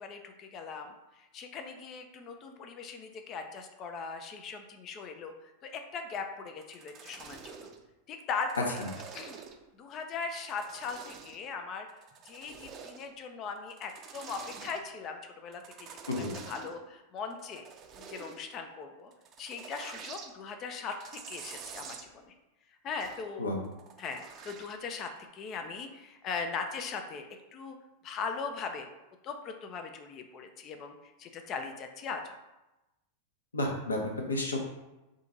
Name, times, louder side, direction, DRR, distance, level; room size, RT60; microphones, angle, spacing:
voice 1, 0.0-7.7 8.1-8.8 9.1-9.4 9.8-11.9 12.3-15.9 16.1-17.7 18.0-19.1 19.4-22.3 22.8-23.5 24.0-27.8 28.0-28.9 29.2-32.3, left 5 dB, 35° left, 6 dB, 0.4 m, -39 dB
sound 1, 6.6-7.8 8.3-9.7 10.2-11.5 11.9-13.1 13.6-14.8 15.5-16.8 17.2-18.4 19.1-20.3 20.8-22.1 23.0-23.3 23.6-24.8 25.2-25.3, right 6 dB, 35° right, 0.5 m, -47 dB
voice 2, 33.5-34.6, left 1 dB, 75° left, 1 dB, 0.7 m, -31 dB
3.6 x 2.5 x 4.0 m, 1.0 s
figure-of-eight pair, 90°, 0 cm